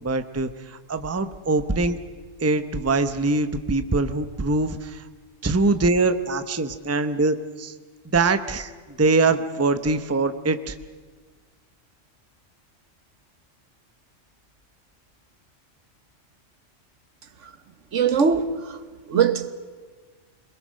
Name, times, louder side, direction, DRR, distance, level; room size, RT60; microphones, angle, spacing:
voice 1, 0.0-2.0 2.4-5.0 5.4-7.7 8.1-8.7 9.0-10.8, right 3 dB, 15° right, 0.7 m, -23 dB
voice 2, 17.9-18.4 19.1-19.5, right 7 dB, 75° right, 1.4 m, -20 dB
26.5 x 21.0 x 6.5 m
omnidirectional pair, 1.3 m